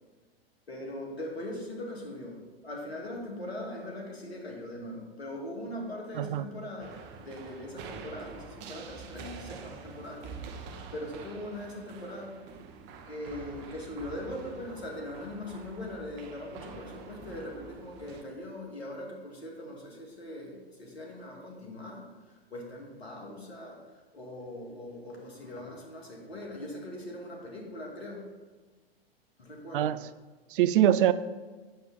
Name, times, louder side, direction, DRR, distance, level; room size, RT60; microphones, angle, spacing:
voice 1, 0.7-12.4 13.0-22.1 22.5-28.3 29.4-30.0, left 1 dB, 85° left, -1 dB, 2.2 m, -41 dB
voice 2, 6.2-6.5 29.7-30.0 30.5-31.1, right 11 dB, 60° right, 15 dB, 0.5 m, -23 dB
sound 1, 6.8-18.2, right 5 dB, 35° right, 0.8 m, -46 dB
7.8 x 7.0 x 4.0 m, 1.3 s
figure-of-eight pair, 100°, 31 cm